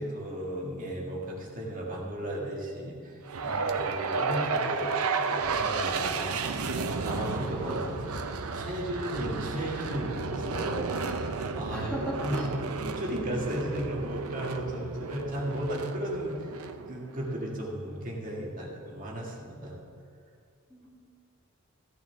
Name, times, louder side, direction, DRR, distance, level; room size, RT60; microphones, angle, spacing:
voice 1, 0.0-10.9 11.5-12.5 12.8-19.8, equal, 35° right, -3 dB, 2.0 m, -35 dB
sound 1, 3.3-17.5, right 4 dB, 85° right, 0.7 m, -32 dB
voice 2, 11.0-11.4 11.7-12.5 14.7-15.0 20.7-20.9, equal, 5° left, -5 dB, 1.8 m, -38 dB
16.0 x 11.5 x 3.5 m, 2.2 s
head